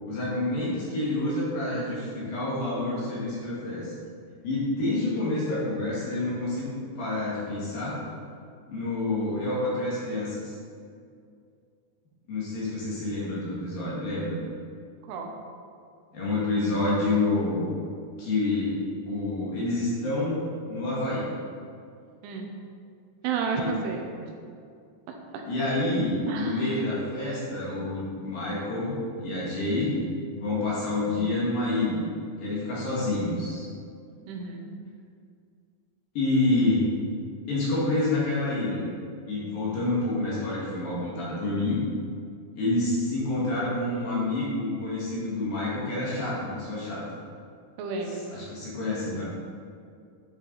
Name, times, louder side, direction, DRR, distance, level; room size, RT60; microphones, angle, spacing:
voice 1, 0.1-3.9 4.4-8.0 8.7-10.5 12.3-14.4 16.1-17.7 18.2-18.7 19.1-20.4 20.7-21.3 23.5-23.7 25.5-29.9 30.3-32.0 32.4-33.6 36.1-36.8 37.5-38.8 39.3-41.8 42.6-47.0 48.3-49.2, left 2 dB, 55° left, -7 dB, 3.3 m, -28 dB
voice 2, 23.2-24.3 25.1-25.2 26.3-26.8 34.3-34.7 47.8-48.3 49.1-49.2, right 5 dB, 80° right, 2 dB, 3.3 m, -32 dB
11.0 x 8.4 x 4.1 m, 2.3 s
omnidirectional pair, 5.7 m